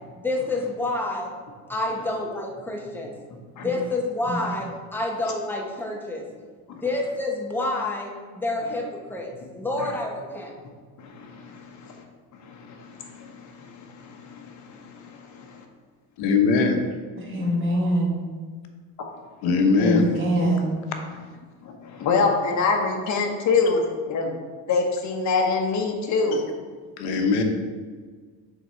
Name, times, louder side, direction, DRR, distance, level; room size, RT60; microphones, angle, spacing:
voice 1, 0.2-1.3 1.7-3.1 3.6-6.3 6.8-10.5, left 2 dB, 5° left, 0 dB, 0.8 m, -28 dB
voice 2, 11.0-12.0 12.3-15.6 21.6-24.4 24.7-26.4, left 4 dB, 45° left, 1 dB, 1.1 m, -26 dB
voice 3, 16.2-16.8 19.4-20.1 27.0-27.4, left 4 dB, 75° left, 4 dB, 1.0 m, -20 dB
voice 4, 17.2-18.2 19.7-20.7, right 1 dB, 30° right, -3 dB, 1.7 m, -23 dB
6.6 x 3.9 x 4.4 m, 1.5 s
cardioid pair, 140°, 39 cm